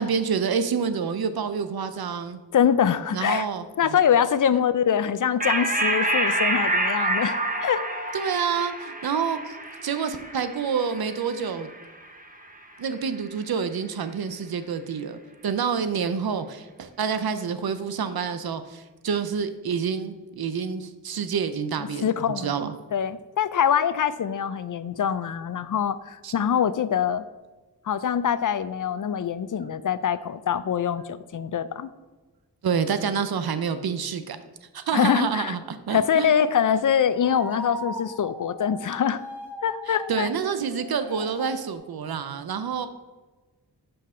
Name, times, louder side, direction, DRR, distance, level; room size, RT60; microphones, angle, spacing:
voice 1, 0.0-2.4 3.1-3.7 4.5-4.6 8.1-9.6 9.8-11.7 12.8-22.1 22.4-22.7 26.2-26.3 32.6-34.4 34.7-36.3 39.9-42.9, right 6 dB, 60° right, 10 dB, 0.7 m, -28 dB
voice 2, 2.5-3.5 3.8-7.8 22.0-22.5 22.9-27.2 27.9-31.9 34.9-35.5 35.9-39.2 39.6-40.3, left 8 dB, 50° left, 14 dB, 0.5 m, -24 dB
sound 1, 5.4-12.3, right 2 dB, 20° right, 0.9 m, -27 dB
sound 2, 36.4-36.7 37.1-41.7, right 1 dB, 5° right, 1.5 m, -39 dB
7.8 x 5.5 x 3.7 m, 1.2 s
cardioid pair, 45°, 41 cm